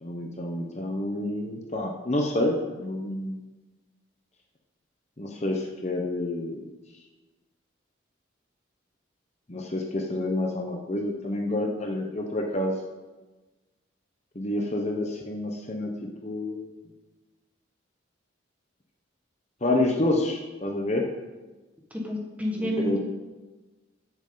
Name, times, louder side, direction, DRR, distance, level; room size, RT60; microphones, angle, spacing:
voice 1, 0.0-3.4 5.2-6.6 9.5-12.7 14.3-15.9 16.2-16.7 19.6-21.0 22.6-23.0, left 1 dB, 35° left, 1 dB, 0.9 m, -28 dB
voice 2, 21.9-23.0, equal, 10° right, -1 dB, 1.5 m, -29 dB
13.0 x 7.5 x 3.9 m, 1.2 s
head